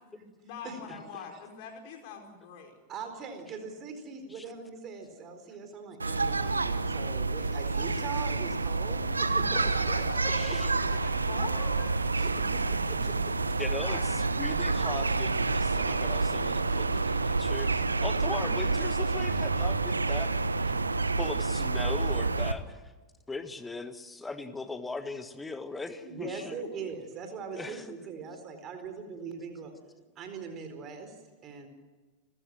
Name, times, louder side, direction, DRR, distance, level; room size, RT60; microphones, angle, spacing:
voice 1, 0.0-2.8 9.5-13.2 13.8-14.4 26.0-26.3 27.5-27.7, left 6 dB, 45° left, 3 dB, 4.7 m, -44 dB
voice 2, 2.9-9.6 10.2-10.3 12.2-13.6 26.1-29.7 30.2-31.7, right 5 dB, 30° right, 7 dB, 4.4 m, -41 dB
sound 1, 6.0-22.5, right 3 dB, 80° right, 1.0 m, -28 dB
voice 3, 10.3-10.7 13.6-20.3 20.6-20.7 21.2-22.8 23.3-26.6 27.6-27.8, left 3 dB, 10° left, 11 dB, 1.6 m, -39 dB
29.5 x 15.0 x 7.7 m, 1.3 s
figure-of-eight pair, 90°, 0 cm